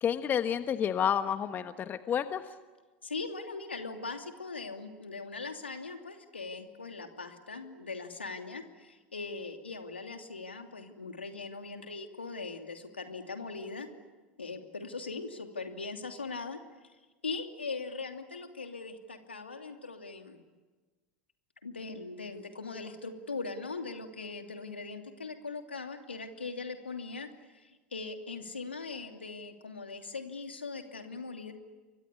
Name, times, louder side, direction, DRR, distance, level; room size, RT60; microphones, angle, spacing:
voice 1, 0.0-2.4, left 8 dB, 30° left, 10 dB, 1.3 m, -30 dB
voice 2, 3.0-13.9 14.4-16.6 17.2-20.4 21.6-27.3 27.5-31.5, left 4 dB, 90° left, 5 dB, 2.8 m, -40 dB
29.5 x 24.0 x 8.5 m, 1.3 s
hypercardioid pair, 85°, 6 cm